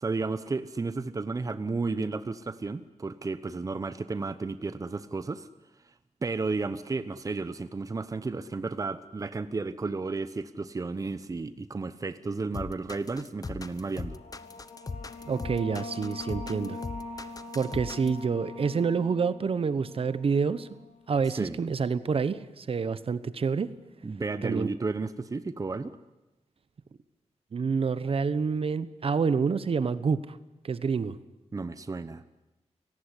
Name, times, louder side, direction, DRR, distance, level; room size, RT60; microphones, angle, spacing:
voice 1, 0.0-5.5 6.2-14.2 21.3-21.6 24.0-26.0 31.5-32.2, right 3 dB, 30° right, 13 dB, 0.9 m, -33 dB
sound 1, 12.5-18.2, left 3 dB, 30° left, 1.1 m, -39 dB
sound 2, 13.8-21.1, left 3 dB, 90° left, 4.2 m, -42 dB
voice 2, 15.3-16.8 17.5-20.8 21.1-23.7 24.4-24.7 27.5-30.4 30.6-31.2, right 5 dB, 50° right, 15 dB, 1.1 m, -28 dB
29.5 x 18.5 x 9.9 m, 0.99 s
wide cardioid pair, 135°, 12 cm